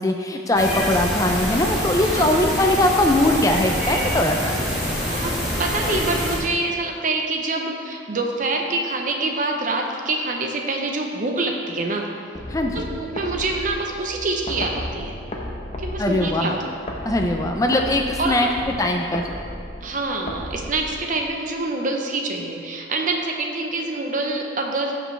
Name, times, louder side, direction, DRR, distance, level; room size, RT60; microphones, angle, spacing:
voice 1, 0.0-4.4 12.5-12.8 16.0-16.5 17.0-18.5 18.8-19.3, left 1 dB, 15° left, 2 dB, 0.4 m, -20 dB
sound 1, 0.5-6.4, equal, 5° right, 2.0 m, -25 dB
voice 2, 5.1-12.1 12.7-15.2 15.8-16.7 18.2-18.5 19.8-24.9, right 2 dB, 40° right, 2 dB, 0.8 m, -26 dB
sound 2, 12.3-21.4, left 1 dB, 35° left, 0.9 m, -34 dB
14.5 x 5.2 x 3.3 m, 2.3 s
head